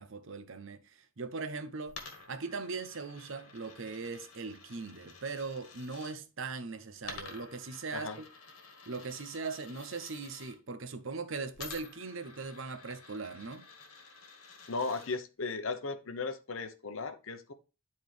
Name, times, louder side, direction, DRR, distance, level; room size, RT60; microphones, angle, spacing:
voice 1, 0.0-2.0 2.3-8.3 8.9-13.6, right 4 dB, 65° right, 0.7 m, -40 dB
Coin (dropping), 1.9-6.1 7.0-10.6 11.5-15.2, left 4 dB, 85° left, 1.6 m, -51 dB
voice 2, 14.7-17.5, left 4 dB, 70° left, 0.9 m, -36 dB
10.5 x 4.3 x 3.3 m
head